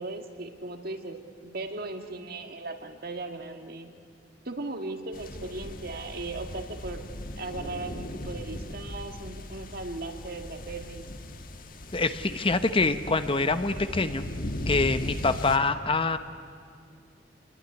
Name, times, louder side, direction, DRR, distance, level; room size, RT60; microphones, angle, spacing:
voice 1, 0.0-3.9 4.5-7.1 7.4-11.0, right 2 dB, 55° right, 6 dB, 1.8 m, -37 dB
sound 1, 5.1-15.6, left 1 dB, 50° left, 1.5 m, -38 dB
voice 2, 11.9-14.2 14.7-16.2, left 3 dB, 30° left, 10 dB, 0.9 m, -25 dB
27.0 x 21.0 x 9.8 m, 2.2 s
head